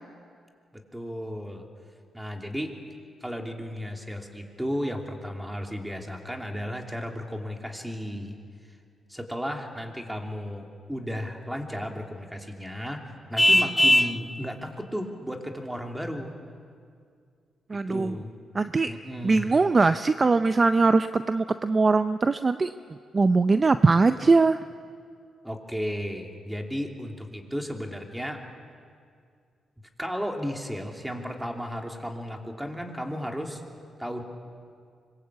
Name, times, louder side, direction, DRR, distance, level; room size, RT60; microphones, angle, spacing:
voice 1, 0.7-1.7 2.1-2.8 3.2-8.4 9.1-13.0 13.3-16.3 17.9-18.3 18.9-19.5 25.4-28.4 30.0-33.6 34.0-34.2, equal, 5° right, 2 dB, 2.9 m, -34 dB
Vehicle horn car horn honking, 13.4-14.2, left 1 dB, 10° left, 0.8 m, -19 dB
voice 2, 17.7-18.2 18.5-18.9 19.2-22.7 23.1-24.6, right 3 dB, 30° right, 10 dB, 0.6 m, -21 dB
25.0 x 22.0 x 8.4 m, 2.2 s
cardioid pair, 90°, 0 cm